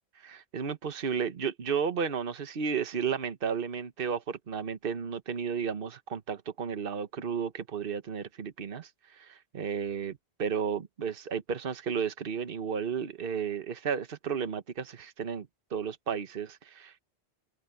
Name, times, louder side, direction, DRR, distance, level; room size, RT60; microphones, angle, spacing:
voice 1, 0.1-17.0, right 6 dB, 55° right, 1.3 m, -33 dB
open air
omnidirectional pair, 1.1 m